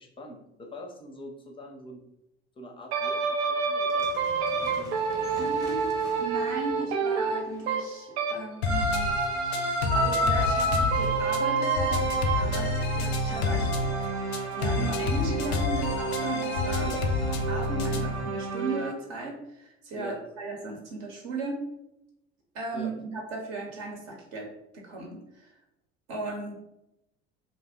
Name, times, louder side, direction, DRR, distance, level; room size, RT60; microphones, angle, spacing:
voice 1, 0.0-2.0 2.6-4.1 4.6-5.5 16.8-17.0 20.0-20.2 22.7-22.9, left 1 dB, 15° left, 2 dB, 0.6 m, -44 dB
sound 1, 2.9-8.4 8.7-18.9, right 4 dB, 75° right, 0.5 m, -29 dB
sound 2, 3.7-7.9, right 1 dB, 10° right, 0.8 m, -47 dB
voice 2, 5.4-5.9 6.2-9.1 9.9-13.8 14.6-16.9 17.3-21.6 22.5-25.5 26.1-26.6, right 3 dB, 50° right, 0 dB, 0.8 m, -37 dB
sound 3, 8.6-18.2, left 3 dB, 70° left, 0.5 m, -29 dB
2.5 x 2.1 x 3.7 m, 0.86 s
figure-of-eight pair, 60°, 33 cm